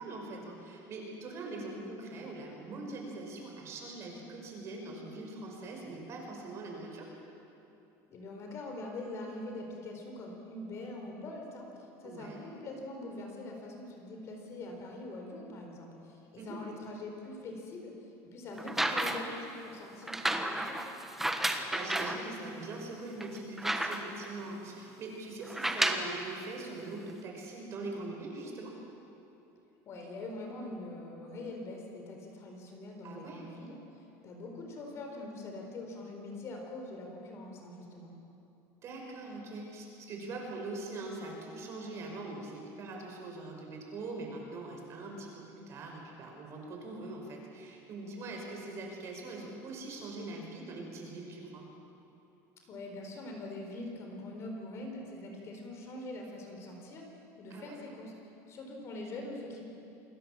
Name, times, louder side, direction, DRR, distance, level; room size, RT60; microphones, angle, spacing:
voice 1, 0.0-7.1 12.0-12.4 16.4-16.6 21.4-28.7 33.0-33.4 38.8-51.6 57.5-57.8, right 2 dB, 35° right, 0 dB, 5.4 m, -42 dB
voice 2, 8.1-17.9 18.2-20.8 29.9-33.8 34.2-38.1 52.7-57.0 57.4-58.1 58.5-59.6, left 2 dB, 35° left, 2 dB, 4.3 m, -43 dB
sound 1, 18.6-19.4 20.1-22.2 22.8-22.9 23.2-24.3 25.4-26.1 27.1-27.2, right 1 dB, 5° right, 1.3 m, -32 dB
27.5 x 20.5 x 7.4 m, 2.8 s
cardioid pair, 160°, 8 cm